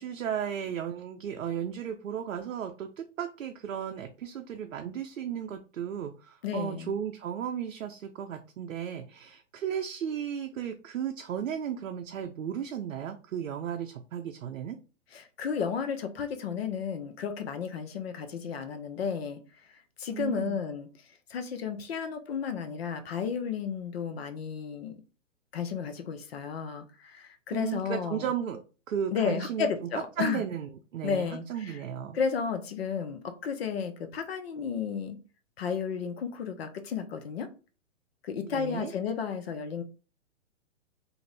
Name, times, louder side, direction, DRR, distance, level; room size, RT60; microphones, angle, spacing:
voice 1, 0.0-14.8 20.1-20.6 27.5-28.6 28.9-29.7 30.2-32.2 38.4-38.9, right 8 dB, 90° right, 0.5 m, -35 dB
voice 2, 6.4-6.9 15.1-19.4 20.0-20.9 21.3-25.0 25.5-28.3 29.1-30.4 31.0-31.8 32.1-35.2 35.6-37.5 38.2-39.8, left 6 dB, 50° left, 0.6 m, -33 dB
2.6 x 2.5 x 3.2 m
hypercardioid pair, 150°, 38 cm